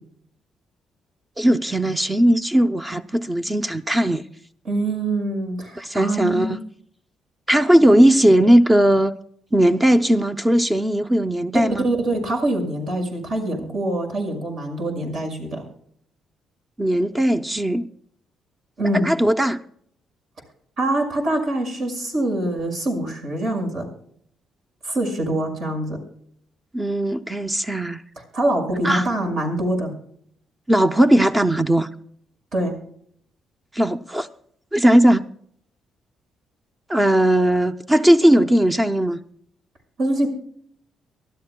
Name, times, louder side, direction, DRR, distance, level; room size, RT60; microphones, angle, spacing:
voice 1, 1.4-4.2 5.8-6.6 7.5-9.2 9.5-11.8 16.8-17.9 18.9-19.6 26.7-28.0 28.8-29.1 30.7-31.9 33.7-34.3 34.7-35.2 36.9-39.2, right 1 dB, 15° right, 0.6 m, -18 dB
voice 2, 4.6-6.6 11.8-15.6 18.8-19.1 20.8-23.9 24.8-26.0 28.3-29.9 32.5-32.7 40.0-40.3, right 1 dB, 65° right, 5.8 m, -24 dB
24.0 x 13.0 x 2.2 m
cardioid pair, 90°, 0 cm